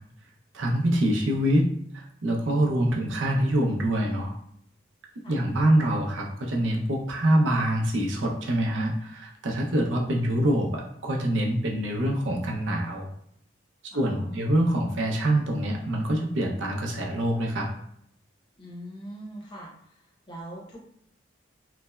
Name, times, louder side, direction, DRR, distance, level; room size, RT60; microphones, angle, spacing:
voice 1, 0.5-1.7 1.9-4.3 5.3-13.1 13.9-17.7, right 1 dB, 85° right, 0 dB, 0.6 m, -25 dB
voice 2, 13.9-14.6 18.6-20.8, right 1 dB, 25° left, -3 dB, 0.7 m, -43 dB
3.2 x 2.0 x 2.2 m, 0.69 s
head